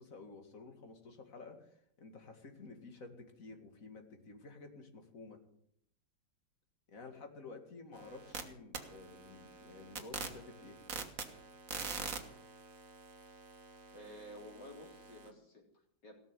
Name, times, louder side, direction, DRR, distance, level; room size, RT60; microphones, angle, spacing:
voice 1, 0.0-1.7 2.0-5.4 6.9-10.8, left 3 dB, 45° left, 5 dB, 2.5 m, -52 dB
sound 1, 7.9-8.4 8.7-15.3, right 5 dB, 50° right, 1.8 m, -45 dB
voice 2, 13.9-16.1, equal, 70° left, 1 dB, 4.0 m, -52 dB
17.5 x 6.7 x 9.9 m, 0.72 s
omnidirectional pair, 2.0 m